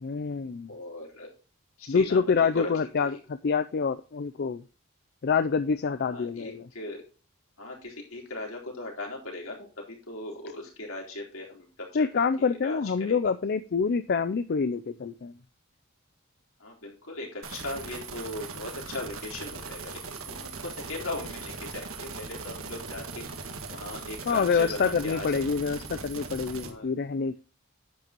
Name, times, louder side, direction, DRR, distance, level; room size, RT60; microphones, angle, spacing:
voice 1, 0.0-0.7 1.9-4.6 5.2-6.7 11.9-15.3 24.3-27.4, left 5 dB, 50° left, 11 dB, 0.4 m, -26 dB
voice 2, 0.7-1.3 1.8-2.2 2.5-2.7 3.0-3.1 6.0-7.0 7.6-12.1 12.4-13.3 16.6-23.3 23.7-25.5 26.6-26.9, left 2 dB, 75° left, -1 dB, 4.0 m, -38 dB
sound 1, 17.4-26.7, right 4 dB, 75° right, 1.8 m, -40 dB
10.5 x 8.6 x 3.0 m, 0.36 s
head